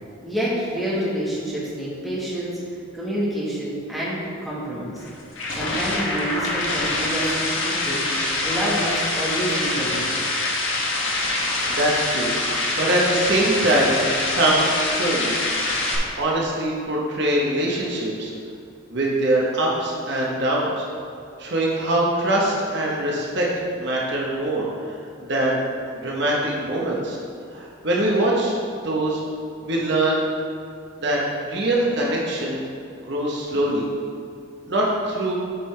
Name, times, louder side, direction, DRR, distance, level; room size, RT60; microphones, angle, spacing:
voice 1, 0.2-2.6 2.9-5.0 5.5-8.1 8.4-10.2, right 1 dB, ahead, -8 dB, 1.4 m, -27 dB
sound 1, 5.0-16.0, left 2 dB, 70° left, 1.0 m, -25 dB
voice 2, 11.5-12.3 12.8-15.5 16.2-18.3 18.9-20.9 21.4-23.5 23.8-25.0 25.2-25.6 25.9-27.2 27.5-28.6 28.8-29.2 29.6-30.2 31.0-32.6 33.0-33.8 34.7-35.3, right 1 dB, 55° right, -4 dB, 1.0 m, -23 dB
8.6 x 5.4 x 3.3 m, 2.4 s
head